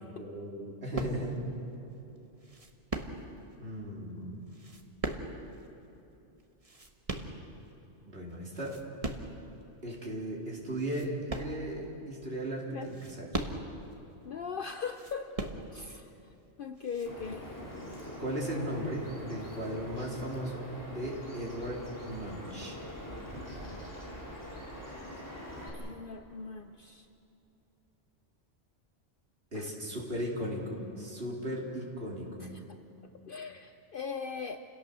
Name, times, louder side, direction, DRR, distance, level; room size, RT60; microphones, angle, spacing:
voice 1, 0.2-1.4 3.6-4.3 8.1-8.8 9.8-13.3 18.2-22.8 29.5-32.5, right 1 dB, 55° right, -3 dB, 3.9 m, -37 dB
sound 1, 0.9-1.5 2.4-3.5 4.5-5.7 6.4-7.8 8.3-9.4 10.0-10.1 10.7-12.0 12.8-13.9 14.8-16.0 16.8-17.1, right 2 dB, 30° right, 1.4 m, -39 dB
voice 2, 14.2-16.1 16.6-17.6 25.7-27.1 29.5-29.7 32.4-32.6 33.3-34.6, left 5 dB, 55° left, 7 dB, 0.8 m, -40 dB
Bird vocalization bird call bird song, 17.1-25.7, equal, 15° left, 4.3 m, -43 dB
29.0 x 17.5 x 6.8 m, 2.9 s
omnidirectional pair, 1.2 m